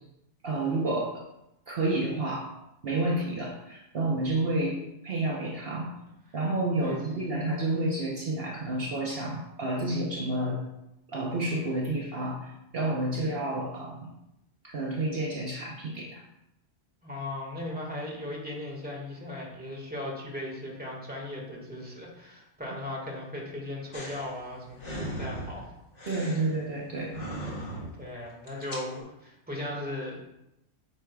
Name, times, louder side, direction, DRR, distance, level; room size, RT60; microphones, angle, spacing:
voice 1, 0.4-1.2 1.7-2.5 2.8-4.8 5.0-5.9 6.3-10.6 11.1-14.1 14.6-16.2 26.1-27.2, right 2 dB, 55° right, -2 dB, 1.1 m, -30 dB
voice 2, 6.8-7.2 17.0-25.6 28.0-30.3, left 1 dB, 10° right, -2 dB, 1.7 m, -37 dB
sound 1, 23.9-28.1 28.4-29.0, right 1 dB, 50° left, 1.8 m, -39 dB
8.8 x 6.1 x 2.4 m, 0.87 s
omnidirectional pair, 1.2 m